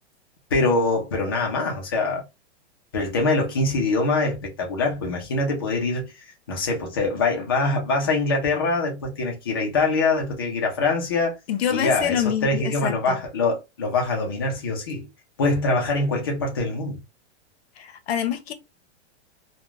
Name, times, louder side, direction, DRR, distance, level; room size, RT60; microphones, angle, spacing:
voice 1, 0.5-2.2 2.9-6.1 6.5-11.3 11.7-15.1 15.4-17.0, left 3 dB, 20° left, 0.3 m, -24 dB
voice 2, 11.5-13.2 17.8-18.5, left 9 dB, 60° left, 0.6 m, -26 dB
3.0 x 2.2 x 2.3 m
supercardioid pair, 170°, 36 cm